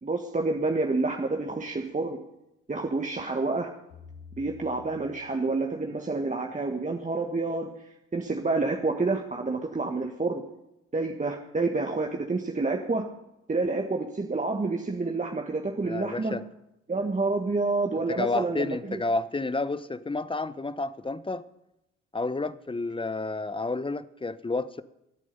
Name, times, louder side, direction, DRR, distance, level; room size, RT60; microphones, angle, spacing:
voice 1, 0.0-2.3 2.7-3.7 4.4-10.4 10.9-13.1 13.5-16.4 16.9-19.0, right 3 dB, 20° right, 2 dB, 1.6 m, -28 dB
sound 1, 3.9-6.3, left 6 dB, 75° left, 5.3 m, -50 dB
voice 2, 15.8-16.4 18.1-21.4 22.1-24.8, left 3 dB, 15° left, 15 dB, 0.9 m, -30 dB
23.5 x 8.3 x 5.4 m, 0.87 s
hypercardioid pair, 50°, 35 cm